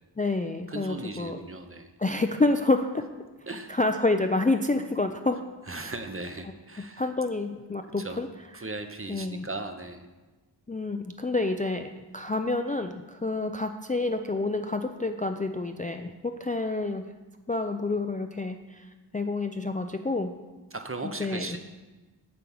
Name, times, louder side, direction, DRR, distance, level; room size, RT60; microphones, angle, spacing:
voice 1, 0.2-1.4 2.0-3.0 3.7-5.9 6.8-8.3 9.1-9.5 10.7-17.1 17.5-18.9 19.1-20.3 21.2-21.6, left 2 dB, 20° left, 6 dB, 0.4 m, -28 dB
voice 2, 0.7-1.9 3.5-3.7 5.7-7.1 8.0-8.2 8.5-10.0 20.7-21.6, right 2 dB, 30° right, 7 dB, 0.7 m, -37 dB
7.5 x 4.5 x 7.0 m, 1.2 s
wide cardioid pair, 45°, 44 cm